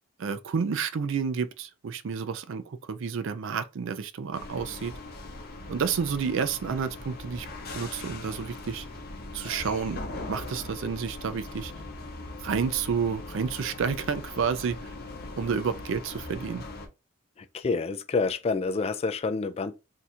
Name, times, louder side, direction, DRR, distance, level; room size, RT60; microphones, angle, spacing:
voice 1, 0.2-4.9 5.7-7.5 7.7-8.9 9.3-10.0 10.3-11.7 12.4-14.8 15.3-16.6, right 6 dB, 65° right, 0.4 m, -30 dB
sound 1, 4.3-16.9, left 2 dB, 50° left, 0.8 m, -40 dB
voice 2, 17.4-19.7, left 4 dB, 30° left, 0.3 m, -28 dB
2.6 x 2.4 x 4.2 m
head